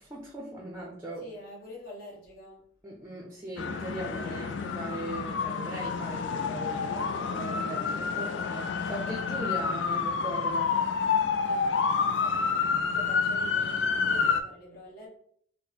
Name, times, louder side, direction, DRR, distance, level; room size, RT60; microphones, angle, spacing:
voice 1, 0.0-1.3 2.8-8.2 8.5-10.8 12.2-12.3, right 1 dB, 15° right, -1 dB, 0.5 m, -39 dB
voice 2, 1.2-2.6 8.1-8.5 11.4-11.7 12.0-15.1, left 1 dB, 50° left, -4 dB, 1.2 m, -47 dB
sound 1, 3.6-14.4, left 5 dB, 70° left, 0.3 m, -29 dB
4.2 x 2.1 x 3.3 m, 0.63 s
head